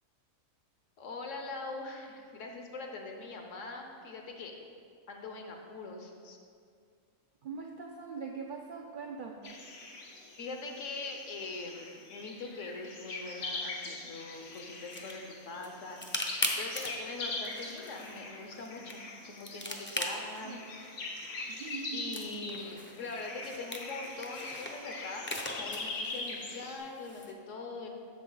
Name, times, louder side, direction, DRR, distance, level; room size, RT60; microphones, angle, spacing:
voice 1, 1.0-4.6 5.1-6.4 10.4-16.0 16.5-20.7 21.9-27.9, left 3 dB, 70° left, 3 dB, 1.2 m, -42 dB
voice 2, 7.4-9.6 19.6-20.8 21.5-22.2, right 5 dB, 65° right, 2 dB, 0.5 m, -43 dB
sound 1, 9.4-26.8, left 3 dB, 85° left, 1.4 m, -42 dB
sound 2, 14.3-27.3, left 1 dB, 20° left, 0.3 m, -41 dB
8.2 x 6.5 x 3.9 m, 2.2 s
omnidirectional pair, 1.4 m